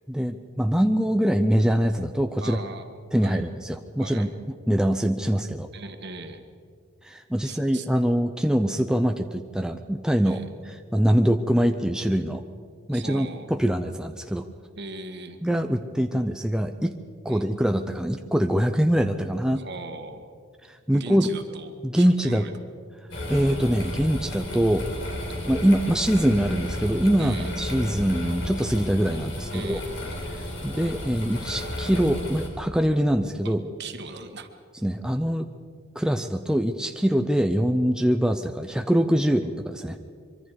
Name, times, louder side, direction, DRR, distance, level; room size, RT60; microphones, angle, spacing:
voice 1, 0.1-2.6 3.1-4.3 4.7-5.7 7.0-10.4 10.9-12.4 12.9-14.5 15.4-16.9 17.2-19.6 20.7-21.3 21.8-22.5 23.3-24.9 25.5-29.8 30.6-33.6 34.8-35.5 35.9-40.0, equal, 5° right, 6 dB, 0.6 m, -23 dB
voice 2, 2.4-2.9 3.2-3.5 4.0-4.3 5.7-6.4 7.4-7.9 10.2-10.5 12.9-13.5 14.8-15.4 17.3-17.5 19.6-20.3 20.9-22.5 27.2-27.5 29.5-29.9 33.4-33.5 33.8-34.5 39.2-39.4, right 3 dB, 55° right, 6 dB, 1.7 m, -39 dB
sound 1, 23.1-32.5, left 1 dB, 60° left, 4.1 m, -33 dB
24.5 x 24.0 x 4.8 m, 2.1 s
head